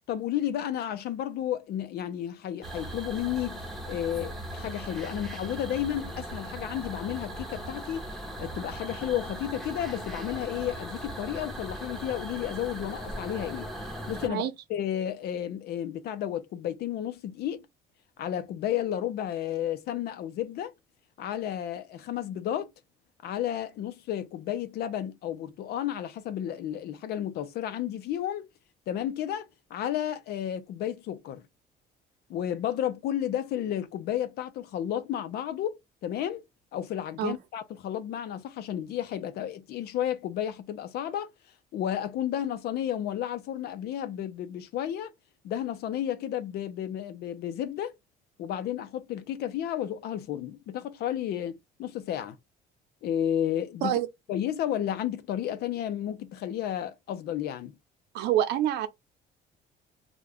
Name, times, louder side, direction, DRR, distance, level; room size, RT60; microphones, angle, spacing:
voice 1, 0.1-3.6 3.9-8.1 8.4-13.7 14.1-17.6 18.2-20.7 21.2-22.7 23.2-28.5 28.9-31.4 32.3-36.4 36.7-41.3 41.7-45.1 45.4-47.9 48.4-52.4 53.0-54.0 54.3-57.8, left 11 dB, 70° left, 0.6 m, -32 dB
sound 1, 2.6-14.3, right 1 dB, ahead, 1.0 m, -38 dB
voice 2, 58.1-58.9, right 11 dB, 80° right, 0.6 m, -26 dB
2.4 x 2.3 x 3.3 m
cardioid pair, 110°, 17 cm